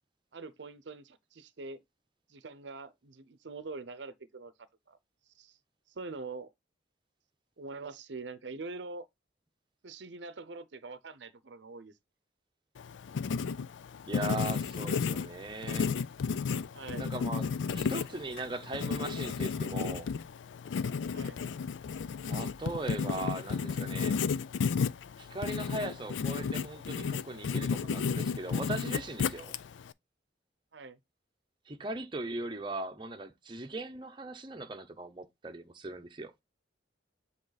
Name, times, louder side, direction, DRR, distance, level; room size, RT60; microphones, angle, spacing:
voice 1, 0.3-1.8 2.3-4.5 4.9-5.0 5.4-5.6 5.9-6.5 7.6-9.1 9.8-11.9 16.7-17.1 21.1-21.4 30.7-31.0, right 3 dB, 75° right, 0.7 m, -44 dB
Writing, 12.8-29.9, left 5 dB, 85° left, 0.4 m, -33 dB
voice 2, 14.1-15.9 17.0-20.1 22.2-24.2 25.2-29.5 31.7-36.3, right 2 dB, 25° right, 0.8 m, -39 dB
7.8 x 3.7 x 4.0 m
head